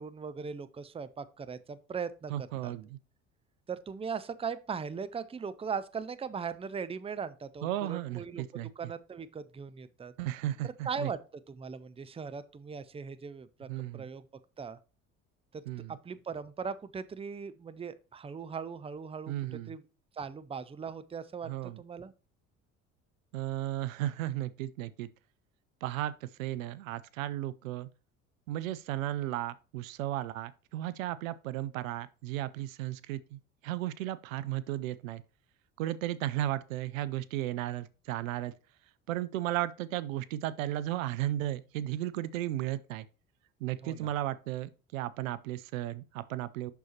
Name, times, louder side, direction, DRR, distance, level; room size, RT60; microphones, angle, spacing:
voice 1, 0.0-2.7 3.7-8.4 8.8-10.1 10.6-11.2 11.5-14.2 14.6-14.8 15.5-15.6 15.9-19.8 20.1-22.1 43.8-44.1, right 6 dB, 15° right, 0.5 m, -39 dB
voice 2, 2.3-3.0 7.6-8.9 10.2-11.1 13.7-14.1 15.7-15.9 19.3-19.8 21.4-21.8 23.3-25.1 25.8-27.9 28.5-35.2 35.8-38.5 39.1-43.1 43.6-46.7, right 14 dB, 80° right, 0.5 m, -35 dB
6.7 x 6.3 x 2.9 m
hypercardioid pair, 60°, 39 cm